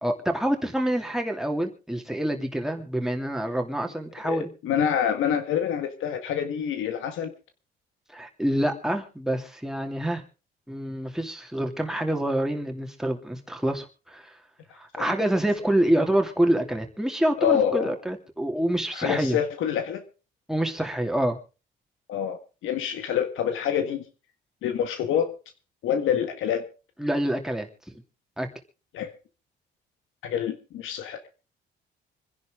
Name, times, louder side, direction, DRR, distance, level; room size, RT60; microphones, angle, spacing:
voice 1, 0.0-4.5 8.1-10.2 10.7-14.3 14.8-19.4 20.5-21.4 27.0-27.7 28.4-28.5, right 1 dB, ahead, 3 dB, 2.8 m, -26 dB
voice 2, 4.3-7.3 15.0-15.1 17.4-17.9 18.9-20.0 22.1-24.0 24.6-25.3 25.8-26.7 28.9-29.1 30.2-31.3, left 9 dB, 85° left, 7 dB, 1.8 m, -26 dB
26.0 x 10.5 x 3.7 m, 0.34 s
cardioid pair, 90°, 20 cm